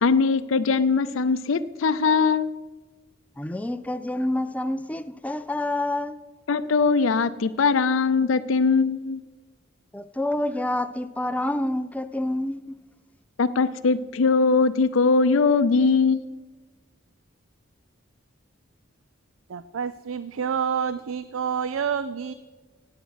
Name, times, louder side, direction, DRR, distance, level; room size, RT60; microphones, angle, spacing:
voice 1, 0.0-2.5 6.5-9.2 13.4-16.4, left 4 dB, 70° left, 0.5 m, -21 dB
voice 2, 3.4-6.2 9.9-12.8, left 1 dB, 5° left, 0.3 m, -28 dB
voice 3, 19.5-22.3, right 7 dB, 85° right, 0.5 m, -28 dB
17.0 x 8.8 x 6.3 m
head